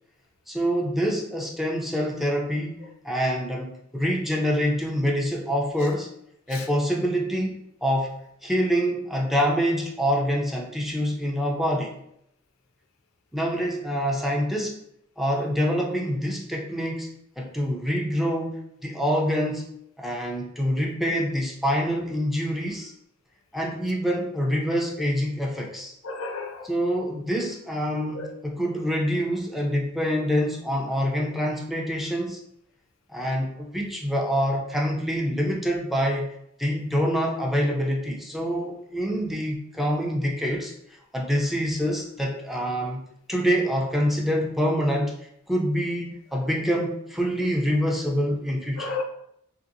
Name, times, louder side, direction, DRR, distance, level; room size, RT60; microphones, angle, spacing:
voice 1, 0.5-6.1 6.5-8.1 8.4-11.9 13.3-14.7 15.2-19.7 20.0-22.9 23.5-25.9 26.7-32.4 33.1-36.3 36.6-40.7 41.1-43.0 43.3-45.1 45.5-48.9, equal, ahead, -1 dB, 0.4 m, -26 dB
voice 2, 26.0-26.7 28.1-28.4 48.8-49.0, left 4 dB, 75° left, 4 dB, 0.5 m, -33 dB
3.1 x 2.7 x 2.5 m, 0.73 s
head